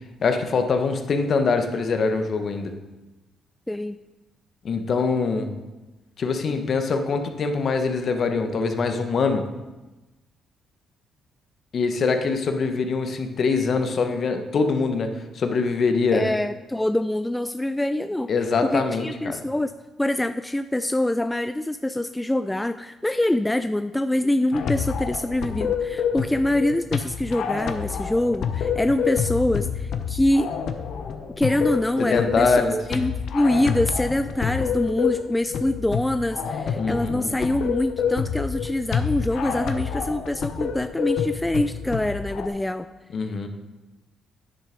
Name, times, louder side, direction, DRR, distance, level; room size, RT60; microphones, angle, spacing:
voice 1, 0.2-2.7 4.6-5.5 6.2-9.5 11.7-16.3 18.3-19.4 32.1-32.7 36.8-37.3 43.1-43.5, left 4 dB, 55° left, 6 dB, 1.1 m, -23 dB
voice 2, 3.7-4.0 16.1-18.3 18.6-19.7 20.0-30.5 31.4-42.9, left 1 dB, 10° left, 10 dB, 0.3 m, -25 dB
sound 1, 24.5-42.5, left 7 dB, 70° left, 0.8 m, -28 dB
9.6 x 6.7 x 5.1 m, 1.1 s
cardioid pair, 90°, 0 cm